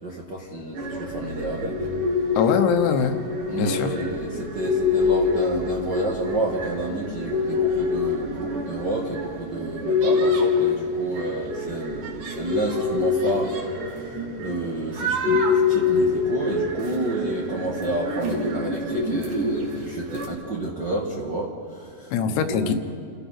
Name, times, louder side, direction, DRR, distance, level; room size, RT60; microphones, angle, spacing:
voice 1, 0.0-1.8 3.5-13.6 13.9-22.7, right 2 dB, 70° right, -3 dB, 1.0 m, -30 dB
sound 1, 0.7-20.3, left 4 dB, 55° right, 3.2 m, -26 dB
voice 2, 2.4-3.2 3.6-3.9 22.1-22.8, left 7 dB, 85° left, 6 dB, 3.4 m, -22 dB
29.5 x 15.5 x 5.8 m, 2.4 s
omnidirectional pair, 5.1 m